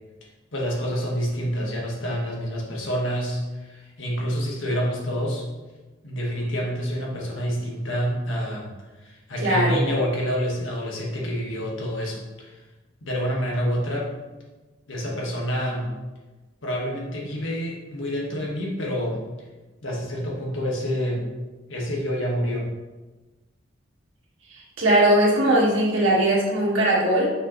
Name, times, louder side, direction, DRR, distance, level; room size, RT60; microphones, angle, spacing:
voice 1, 0.5-5.5 6.0-8.7 9.0-12.5 13.0-14.1 14.9-15.9 16.6-19.2 19.8-21.2 21.7-22.7, equal, 75° left, -3 dB, 1.6 m, -27 dB
voice 2, 9.4-9.9 24.5-27.3, right 1 dB, 75° right, -3 dB, 1.8 m, -20 dB
6.4 x 5.7 x 3.2 m, 1.2 s
head